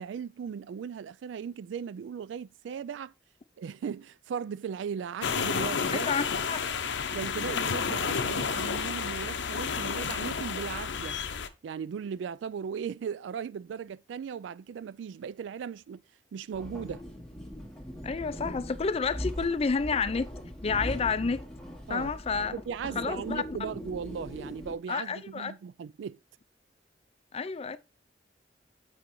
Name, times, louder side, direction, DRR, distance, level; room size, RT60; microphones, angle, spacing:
voice 1, 0.0-3.1 3.6-6.1 7.1-11.2 11.6-16.0 16.3-17.0 21.9-22.1 22.5-26.2, right 7 dB, 90° right, 0.3 m, -37 dB
sound 1, 5.2-11.5, left 6 dB, 75° left, 0.6 m, -31 dB
voice 2, 5.9-6.6 18.0-20.3 20.6-21.4 21.9-22.5 23.0-23.4 24.9-25.5 27.3-27.8, left 5 dB, 35° left, 0.4 m, -30 dB
sound 2, 16.5-24.8, equal, 5° left, 1.7 m, -40 dB
8.1 x 4.9 x 3.1 m
head